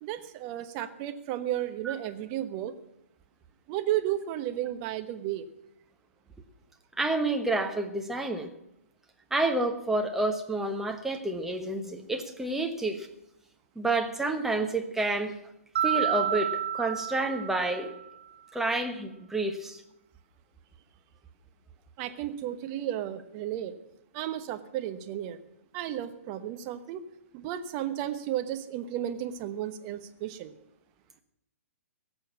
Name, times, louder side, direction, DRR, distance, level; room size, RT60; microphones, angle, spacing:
voice 1, 0.0-2.7 3.7-5.5 22.0-23.7 24.1-25.4 25.7-27.0 27.3-30.5, right 12 dB, 30° right, 8 dB, 1.1 m, -33 dB
voice 2, 7.0-8.5 9.3-13.1 13.7-15.4 15.8-17.9 18.5-19.8, right 2 dB, 5° right, 4 dB, 1.2 m, -29 dB
Mallet percussion, 15.8-18.1, right 10 dB, 45° right, 0.6 m, -30 dB
17.0 x 7.0 x 8.5 m, 0.84 s
figure-of-eight pair, 120°, 8 cm